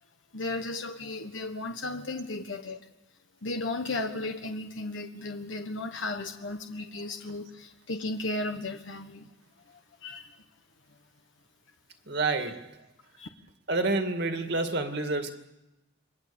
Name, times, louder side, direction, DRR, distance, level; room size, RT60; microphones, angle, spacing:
voice 1, 0.3-2.8 3.4-9.3 10.0-10.3 13.2-13.3, left 2 dB, 80° left, 5 dB, 1.4 m, -35 dB
voice 2, 12.1-12.7 13.7-15.3, right 3 dB, 60° right, 5 dB, 2.3 m, -28 dB
28.0 x 21.5 x 7.1 m, 0.97 s
head